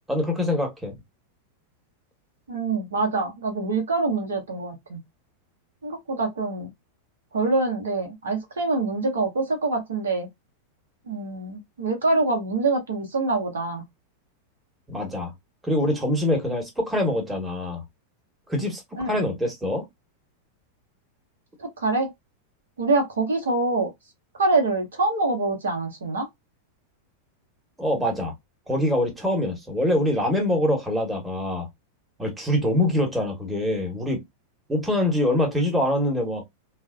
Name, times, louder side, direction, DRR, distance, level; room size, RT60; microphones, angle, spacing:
voice 1, 0.1-0.9 14.9-15.3 15.6-17.8 18.5-19.8 27.8-28.3 28.7-31.7 32.2-34.2 34.7-36.4, left 1 dB, 10° right, 1.0 m, -24 dB
voice 2, 2.5-5.0 5.8-6.7 7.3-10.3 11.1-13.8 19.0-19.2 21.6-22.1 22.8-23.9 24.4-26.3, right 3 dB, 65° right, 0.8 m, -25 dB
3.1 x 2.1 x 2.4 m
figure-of-eight pair, 90°, 0 cm